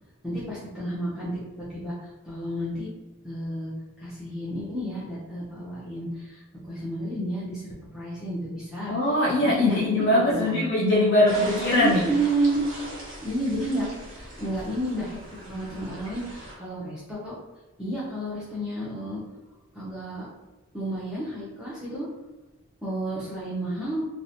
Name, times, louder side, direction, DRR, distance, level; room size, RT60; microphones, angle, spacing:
voice 1, 0.2-2.9 3.2-3.7 4.0-8.9 9.4-9.8 10.1-10.6 11.7-12.6 13.2-15.2 15.5-17.3 17.8-19.2 19.7-20.2 20.7-22.1 22.8-24.1, right 1 dB, 5° right, -9 dB, 0.5 m, -31 dB
voice 2, 8.9-12.1, left 1 dB, 55° left, -6 dB, 0.4 m, -22 dB
sound 1, 11.3-16.6, right 1 dB, 35° right, 0.8 m, -40 dB
2.8 x 2.0 x 2.6 m, 1.1 s
head